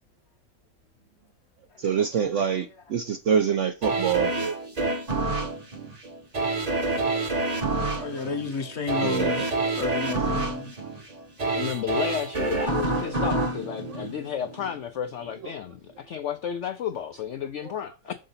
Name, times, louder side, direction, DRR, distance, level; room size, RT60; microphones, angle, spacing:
voice 1, 1.8-4.5 9.0-9.5 13.9-14.0, right 7 dB, 65° right, 0.7 m, -25 dB
sound 1, 3.8-14.8 15.2-15.3, right 2 dB, 30° right, 0.8 m, -28 dB
voice 2, 7.8-10.7, left 4 dB, 45° left, 1.1 m, -32 dB
voice 3, 11.5-18.1, left 9 dB, 75° left, 0.6 m, -32 dB
6.4 x 3.8 x 5.6 m
omnidirectional pair, 1.9 m